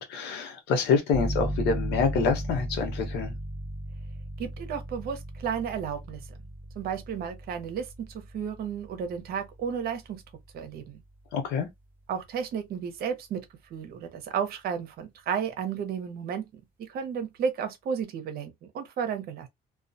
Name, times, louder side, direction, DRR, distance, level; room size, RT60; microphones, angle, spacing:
voice 1, 0.0-3.3 11.3-11.7, left 5 dB, 85° left, 0.9 m, -26 dB
sound 1, 1.1-11.7, right 1 dB, 10° right, 1.1 m, -37 dB
voice 2, 4.4-6.2 6.7-10.2 10.5-11.0 12.1-13.4 13.7-19.5, right 7 dB, 65° right, 0.8 m, -33 dB
2.3 x 2.3 x 2.6 m
cardioid pair, 110°, 17 cm